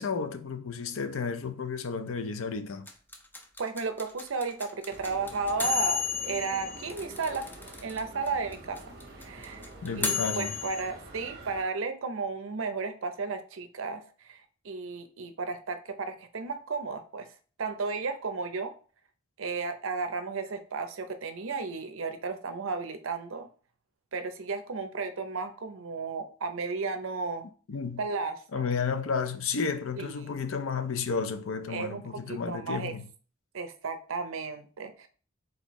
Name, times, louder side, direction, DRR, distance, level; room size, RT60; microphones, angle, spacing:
voice 1, 0.0-2.9 9.8-10.6 27.7-28.1 28.5-33.1, left 5 dB, 70° left, 0.5 m, -32 dB
sound 1, 2.9-8.0 8.3-8.4 8.5-10.8, left 6 dB, 10° left, 0.4 m, -32 dB
voice 2, 3.6-7.5 7.8-8.8 9.2-9.6 10.0-14.4 14.6-17.3 17.6-18.7 19.4-23.5 24.1-27.5 28.0-28.7 30.0-30.4 31.7-32.0 32.3-32.9 33.5-35.1, right 4 dB, 70° right, 0.6 m, -34 dB
sound 2, 4.9-11.6, right 2 dB, 45° right, 1.0 m, -47 dB
4.3 x 3.9 x 3.0 m
head